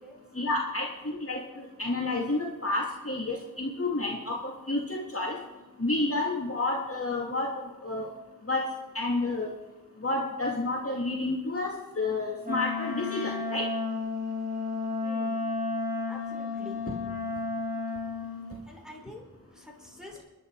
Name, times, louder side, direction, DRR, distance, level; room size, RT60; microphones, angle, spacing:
voice 1, 0.3-5.4 5.8-7.5 7.8-8.1 8.5-8.7 8.9-9.5 10.0-13.7, left 2 dB, 45° left, -2 dB, 2.2 m, -30 dB
Wind instrument woodwind instrument, 12.4-18.5, left 3 dB, 25° right, 4.5 m, -32 dB
voice 2, 15.0-15.4 16.1-16.8 18.7-20.2, left 1 dB, ahead, -1 dB, 5.0 m, -47 dB
25.5 x 11.0 x 4.7 m, 1.1 s
wide cardioid pair, 55°, 33 cm